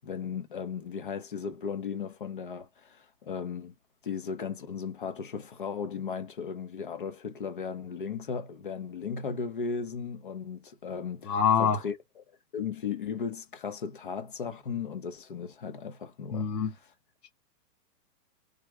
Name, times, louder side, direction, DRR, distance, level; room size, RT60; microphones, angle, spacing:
voice 1, 0.0-3.7 4.0-12.2 12.5-16.5, left 6 dB, 35° left, 0.4 m, -36 dB
voice 2, 11.2-11.8 16.3-16.7, left 7 dB, 70° left, 1.2 m, -25 dB
3.5 x 2.1 x 2.9 m
hypercardioid pair, 160°, 49 cm